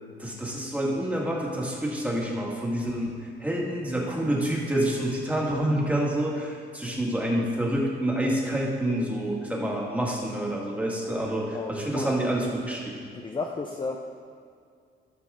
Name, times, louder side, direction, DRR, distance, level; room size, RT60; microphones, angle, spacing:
voice 1, 0.2-13.1, right 1 dB, 5° right, -3 dB, 2.1 m, -28 dB
voice 2, 11.5-12.2 13.1-14.0, left 3 dB, 25° left, 2 dB, 0.6 m, -33 dB
14.0 x 6.1 x 3.8 m, 2.2 s
cardioid pair, 90°, 20 cm